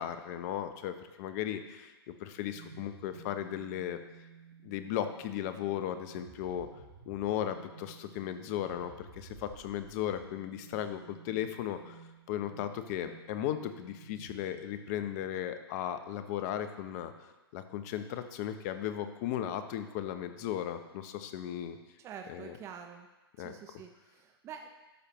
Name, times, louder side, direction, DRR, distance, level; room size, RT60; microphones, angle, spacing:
voice 1, 0.0-4.0 4.6-6.7 7.1-12.0 12.3-17.1 17.5-21.8 22.3-22.6 23.4-23.5, left 10 dB, 40° left, 9 dB, 0.7 m, -36 dB
sound 1, 2.5-15.3, right 5 dB, 60° right, 1.7 m, -54 dB
voice 2, 22.0-23.1 23.4-24.7, right 7 dB, 20° right, 5 dB, 0.5 m, -47 dB
12.0 x 6.5 x 3.0 m, 1.1 s
hypercardioid pair, 120°, 13 cm